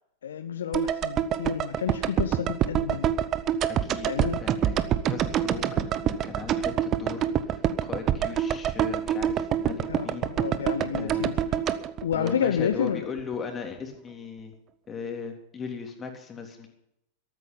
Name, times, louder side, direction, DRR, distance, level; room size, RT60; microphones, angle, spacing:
voice 1, 0.2-3.1 4.0-4.4 9.9-11.4 12.0-13.1, left 8 dB, 65° left, 10 dB, 0.8 m, -30 dB
sound 1, 0.7-12.9 13.2-13.3, right 10 dB, 30° right, 0.9 m, -27 dB
voice 2, 3.7-4.8 5.0-10.3 10.9-11.3 12.1-14.5 14.9-16.7, left 5 dB, 20° left, 3 dB, 3.3 m, -38 dB
14.0 x 13.5 x 5.4 m, 0.78 s
figure-of-eight pair, 90°, 0 cm